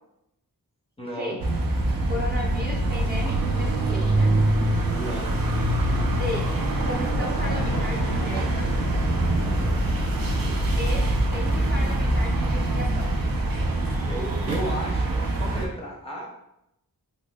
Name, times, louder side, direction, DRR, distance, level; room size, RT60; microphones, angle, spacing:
voice 1, 1.0-1.4 4.9-5.4 14.1-16.3, equal, 15° left, -3 dB, 0.6 m, -34 dB
sound 1, 1.4-15.7, right 1 dB, 70° right, 0.6 m, -24 dB
voice 2, 2.0-4.4 6.2-6.5 6.8-8.7 10.7-13.1, left 1 dB, 25° right, -2 dB, 0.7 m, -35 dB
Big Thunder Crashes, 6.3-12.5, left 4 dB, 85° left, 0.5 m, -40 dB
3.0 x 2.0 x 3.5 m, 0.82 s
wide cardioid pair, 80°, 36 cm